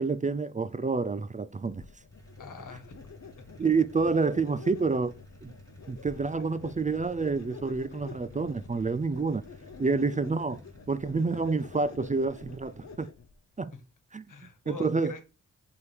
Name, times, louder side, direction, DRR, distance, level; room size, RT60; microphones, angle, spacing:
voice 1, 0.0-1.8 3.6-5.1 5.4-5.5 5.9-9.4 9.8-10.6 10.9-13.1 13.6-13.7 14.1-14.2 14.7-15.1, right 4 dB, 25° right, 0.4 m, -28 dB
sound 1, 1.7-13.4, left 5 dB, 60° left, 0.8 m, -48 dB
sound 2, 2.1-13.0, right 1 dB, 10° left, 2.5 m, -54 dB
voice 2, 2.4-3.5 14.3-15.2, left 4 dB, 80° left, 1.3 m, -45 dB
8.0 x 3.6 x 3.3 m
cardioid pair, 55°, 31 cm